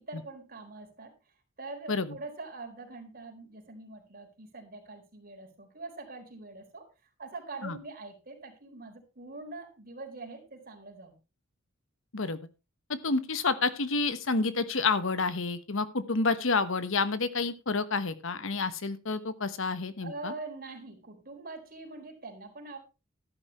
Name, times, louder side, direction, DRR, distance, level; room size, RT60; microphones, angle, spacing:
voice 1, 0.0-6.9 7.2-11.1 20.0-22.8, right 3 dB, 45° right, 3 dB, 4.3 m, -44 dB
voice 2, 12.9-20.3, left 4 dB, 70° left, 13 dB, 1.2 m, -29 dB
13.0 x 11.0 x 3.1 m, 0.29 s
head